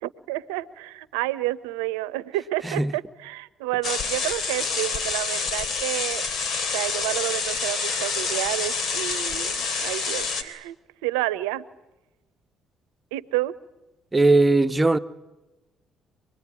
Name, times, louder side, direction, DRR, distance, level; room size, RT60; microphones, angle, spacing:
voice 1, 0.0-6.2 6.7-10.8 11.0-11.7 13.1-13.5, right 17 dB, 90° right, 0.8 m, -30 dB
sound 1, 3.8-10.4, left 4 dB, 60° left, 3.3 m, -27 dB
voice 2, 14.1-15.0, right 2 dB, 20° right, 1.3 m, -19 dB
26.0 x 21.0 x 9.8 m
supercardioid pair, 60°, 0 cm